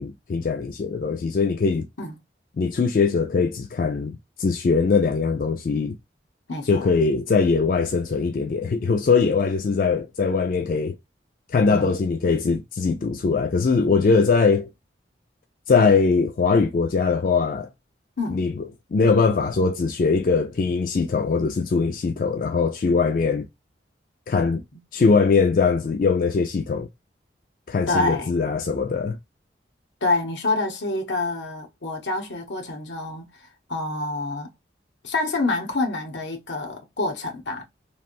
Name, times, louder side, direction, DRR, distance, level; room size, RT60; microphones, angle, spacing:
voice 1, 0.0-1.9 2.6-5.9 6.6-10.9 11.5-14.7 15.7-17.7 18.3-18.6 18.9-23.4 24.3-24.6 24.9-26.9 27.7-29.2, left 4 dB, 45° left, 0.3 m, -21 dB
voice 2, 6.5-6.9 11.7-12.0 18.2-18.4 27.9-28.3 30.0-33.3 33.7-34.5 35.0-37.6, left 2 dB, 80° left, 0.9 m, -27 dB
3.2 x 2.5 x 2.5 m
head